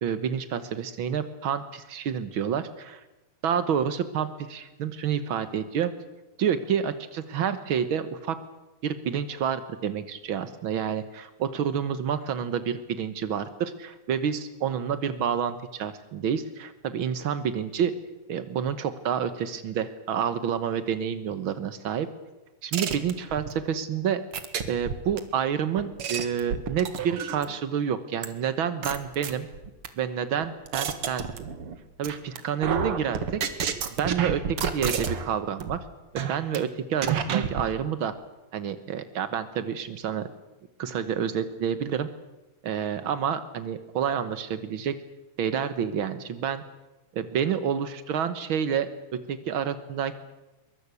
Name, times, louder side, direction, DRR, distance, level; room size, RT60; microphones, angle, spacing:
voice 1, 0.0-3.0 3.4-5.9 6.4-8.4 8.8-17.9 18.3-22.1 22.6-24.2 24.7-29.5 30.0-31.5 32.0-33.4 34.0-35.8 36.1-38.1 38.5-40.3 40.8-42.1 42.6-45.0 45.4-46.6 47.1-48.9 49.3-50.2, right 8 dB, 90° right, 12 dB, 1.1 m, -29 dB
sound 1, 22.7-23.5 24.3-25.2 25.8-27.6 28.2-28.3 28.8-29.9 30.4-31.8 32.0-32.4 32.6-35.3 35.6-35.8 36.2-36.6 37.0-37.7, right 7 dB, 50° right, 2.1 m, -29 dB
23.0 x 22.5 x 8.3 m, 1.0 s
omnidirectional pair, 4.1 m